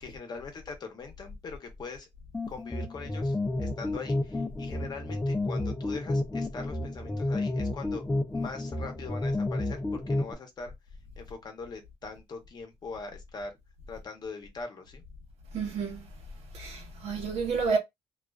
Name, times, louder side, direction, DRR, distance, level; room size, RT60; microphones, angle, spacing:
voice 1, 0.0-2.1 2.5-8.1 8.3-10.7 11.2-13.5 13.9-15.0, left 4 dB, 40° left, 0.8 m, -42 dB
sound 1, 2.3-10.3, left 2 dB, 10° left, 0.3 m, -31 dB
voice 2, 15.5-16.1 16.5-17.8, right 5 dB, 70° right, 0.9 m, -30 dB
2.4 x 2.3 x 2.3 m
cardioid pair, 115°, 11 cm